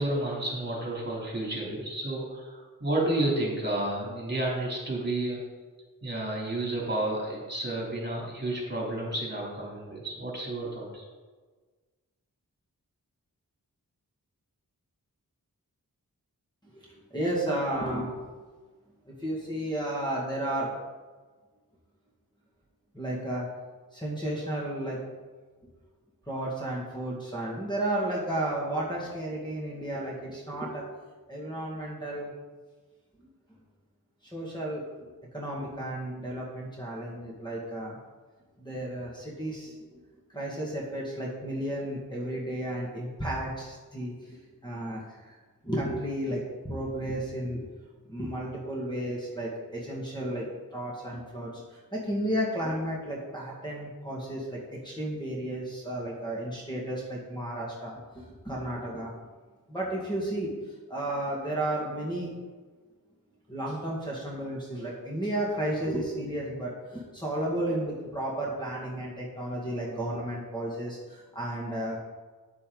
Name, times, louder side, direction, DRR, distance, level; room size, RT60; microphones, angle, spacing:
voice 1, 0.0-5.4 6.0-11.0, right 1 dB, 30° right, -4 dB, 3.2 m, -31 dB
voice 2, 16.7-18.4 19.1-20.7 22.9-23.5 23.9-25.0 26.3-30.8 31.3-32.3 33.2-33.3 34.2-38.0 38.6-40.0 40.3-45.3 45.6-47.6 48.1-50.5 50.7-59.1 59.7-62.3 63.5-72.0, right 1 dB, 10° left, -5 dB, 2.0 m, -33 dB
8.9 x 8.3 x 3.9 m, 1.4 s
wide cardioid pair, 65°, 35 cm